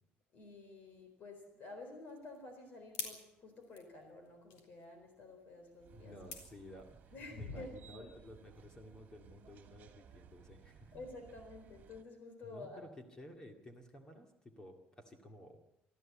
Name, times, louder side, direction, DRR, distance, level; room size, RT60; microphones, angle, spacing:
voice 1, 0.3-6.1 7.1-8.1 10.9-12.8, left 2 dB, 45° left, 6 dB, 4.2 m, -50 dB
sound 1, 1.6-7.2, left 5 dB, 80° left, 4.0 m, -51 dB
sound 2, 5.8-12.0, right 8 dB, 45° right, 2.3 m, -60 dB
voice 2, 5.9-11.0 12.4-15.6, left 1 dB, 15° left, 5 dB, 2.1 m, -54 dB
25.0 x 14.0 x 8.7 m, 0.86 s
cardioid pair, 175°, 4 cm